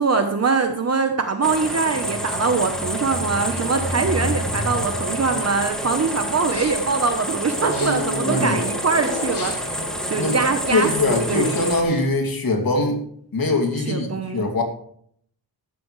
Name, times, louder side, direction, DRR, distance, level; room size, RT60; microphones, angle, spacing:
voice 1, 0.0-11.6 13.9-14.5, right 4 dB, 40° right, 6 dB, 0.9 m, -23 dB
sound 1, 1.4-11.8, equal, ahead, 2.0 m, -28 dB
sound 2, 2.0-6.7 7.4-10.0 10.7-10.8, left 1 dB, 25° left, 3.1 m, -31 dB
sound 3, 6.4-6.9 7.6-8.2 9.2-9.8 10.6-11.1 11.7-12.2, left 4 dB, 75° left, 2.3 m, -39 dB
voice 2, 8.2-8.6 10.2-10.4 10.7-13.0 13.3-14.6, left 2 dB, 55° left, 2 dB, 2.7 m, -22 dB
14.5 x 12.0 x 3.2 m, 0.64 s
wide cardioid pair, 125°, 41 cm